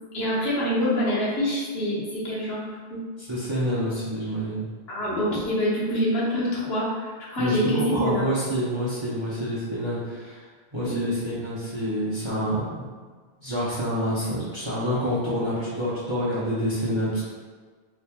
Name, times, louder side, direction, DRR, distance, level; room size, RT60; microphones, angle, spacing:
voice 1, 0.1-2.6 2.9-3.0 4.9-8.3 10.8-11.1, equal, 70° left, -6 dB, 1.2 m, -26 dB
voice 2, 3.2-4.7 7.4-10.4 10.7-12.8 13.4-17.2, equal, 30° right, -10 dB, 0.8 m, -27 dB
4.0 x 3.1 x 2.2 m, 1.5 s
omnidirectional pair, 1.1 m